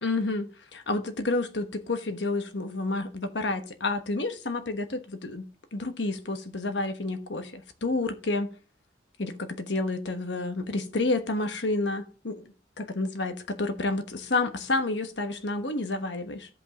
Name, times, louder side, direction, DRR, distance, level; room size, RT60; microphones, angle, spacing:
voice 1, 0.0-5.4 5.7-8.5 9.2-12.5 12.8-16.5, left 2 dB, 80° left, 1.2 m, -30 dB
14.5 x 5.4 x 2.9 m
head